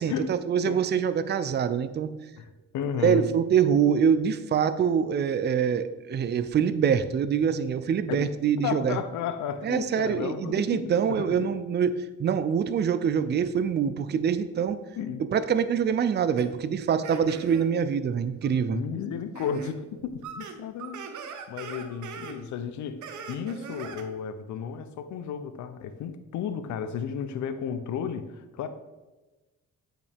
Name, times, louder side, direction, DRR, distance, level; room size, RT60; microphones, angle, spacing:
voice 1, 0.0-2.1 3.0-9.0 9.6-14.8 15.3-18.8, right 7 dB, 35° right, 12 dB, 0.5 m, -25 dB
voice 2, 2.4-3.3 8.1-8.3 8.6-11.3 14.6-14.7 15.0-15.2 18.7-21.0 21.5-28.7, left 7 dB, 70° left, 10 dB, 0.6 m, -33 dB
sound 1, 16.4-16.5 17.0-17.7 18.4-18.5 19.3-19.7 20.0-22.4 23.0-24.1, right 6 dB, 75° right, 1.0 m, -41 dB
8.7 x 5.6 x 3.5 m, 1.1 s
cardioid pair, 90°, 30 cm